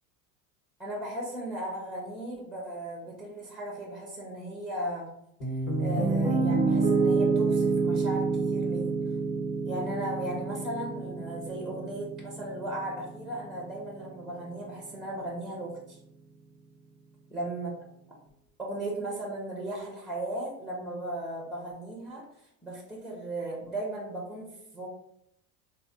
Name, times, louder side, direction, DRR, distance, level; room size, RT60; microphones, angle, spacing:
voice 1, 0.8-5.1 5.8-9.0 9.6-16.0 17.3-17.7 18.6-22.2 22.6-24.5 24.7-24.9, right 1 dB, ahead, -2 dB, 0.6 m, -36 dB
Piano, 5.4-13.5, right 4 dB, 75° left, 1.4 m, -28 dB
3.2 x 2.3 x 2.6 m, 0.77 s
hypercardioid pair, 90°, 49 cm